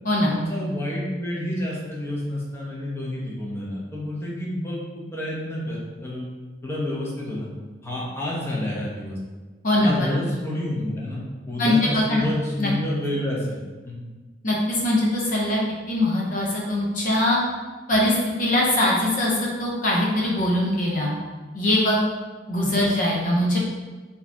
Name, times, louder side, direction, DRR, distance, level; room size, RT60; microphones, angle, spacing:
voice 1, 0.3-6.3 6.6-7.5 7.8-9.2 9.8-13.6 13.8-14.1 22.7-22.8, left 1 dB, 15° left, -5 dB, 0.9 m, -29 dB
voice 2, 11.6-12.3 12.6-12.7 14.4-15.6 15.9-17.4 17.9-19.3 19.6-21.1 21.5-22.0 22.5-23.6, left 1 dB, 45° left, -3 dB, 0.7 m, -22 dB
4.6 x 2.9 x 3.4 m, 1.3 s
head